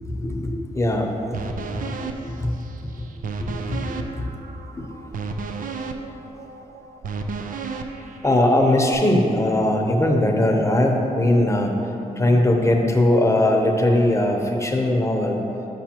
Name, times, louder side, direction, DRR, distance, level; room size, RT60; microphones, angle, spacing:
voice 1, 0.1-1.1 1.9-2.5 3.0-3.1 3.4-4.3 8.2-11.7 12.2-15.4, left 1 dB, 20° left, 1 dB, 0.8 m, -20 dB
sound 1, 1.3-8.9, right 4 dB, 65° right, 0.4 m, -33 dB
7.2 x 5.4 x 2.9 m, 2.9 s
cardioid pair, 60°, 15 cm